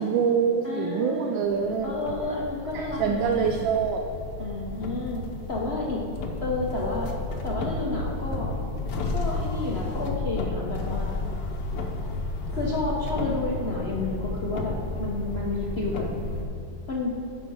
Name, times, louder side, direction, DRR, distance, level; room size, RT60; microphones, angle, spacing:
voice 1, 0.0-1.9 2.7-4.0, right 6 dB, 75° right, 3 dB, 1.2 m, -25 dB
voice 2, 0.6-1.4 1.8-3.4 4.4-5.2 5.5-6.0 6.4-7.1 7.4-8.6 9.1-11.2 12.5-16.0 16.9-17.1, left 2 dB, 80° left, -3 dB, 0.5 m, -30 dB
sound 1, 1.5-16.5, left 2 dB, 65° left, 1.2 m, -32 dB
8.3 x 5.4 x 5.4 m, 2.7 s
omnidirectional pair, 2.4 m